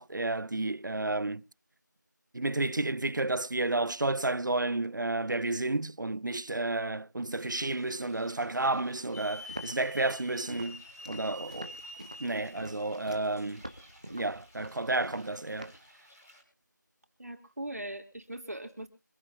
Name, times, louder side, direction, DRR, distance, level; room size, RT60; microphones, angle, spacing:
voice 1, 0.0-1.4 2.3-10.8 11.1-11.7 12.2-13.6 14.1-15.7, right 2 dB, 75° right, 0.5 m, -31 dB
sound 1, 7.4-16.4, equal, 5° left, 2.5 m, -58 dB
Hiss / Alarm, 9.1-13.9, left 1 dB, 50° left, 3.8 m, -47 dB
Walk footsteps, 9.5-15.9, right 1 dB, 20° right, 1.0 m, -46 dB
voice 2, 17.2-18.9, right 1 dB, 55° right, 3.4 m, -40 dB
25.5 x 9.8 x 2.8 m
figure-of-eight pair, 175°, 10 cm